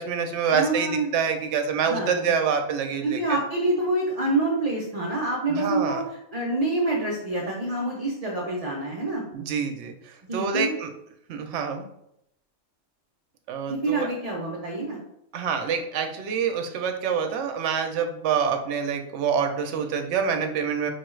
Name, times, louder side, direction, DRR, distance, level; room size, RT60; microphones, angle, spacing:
voice 1, 0.0-3.4 5.5-6.1 9.3-10.9 11.3-11.9 13.5-14.1 15.3-20.9, right 6 dB, 70° right, 5 dB, 0.8 m, -26 dB
voice 2, 0.5-1.1 1.8-2.3 3.0-6.0 6.3-9.2 10.3-10.7 13.7-15.0, right 2 dB, 45° right, -3 dB, 0.5 m, -27 dB
4.6 x 2.3 x 3.1 m, 0.78 s
omnidirectional pair, 1.3 m